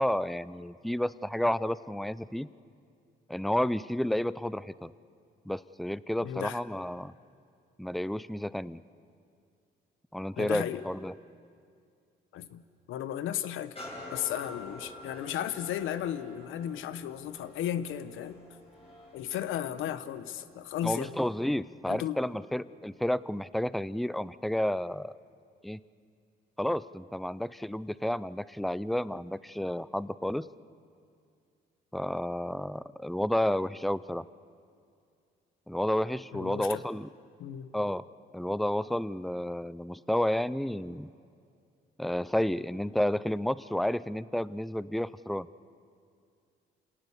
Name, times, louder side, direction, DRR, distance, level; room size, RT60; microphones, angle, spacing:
voice 1, 0.0-2.5 3.3-4.9 5.5-7.1 7.8-8.8 10.1-11.1 20.8-25.2 25.6-25.8 26.6-30.5 31.9-34.3 35.7-37.1 37.7-38.0 38.3-41.1 42.0-45.5, left 1 dB, ahead, 18 dB, 0.5 m, -31 dB
voice 2, 6.2-6.6 10.4-10.8 12.3-12.6 12.9-13.8 14.1-18.4 19.1-21.1 21.9-22.2 36.3-36.8 37.4-37.7, left 10 dB, 85° left, 13 dB, 0.9 m, -35 dB
sound 1, 13.8-21.4 21.9-22.0, left 1 dB, 30° left, 7.6 m, -48 dB
28.0 x 18.0 x 7.0 m, 2.3 s
cardioid pair, 90°, 20 cm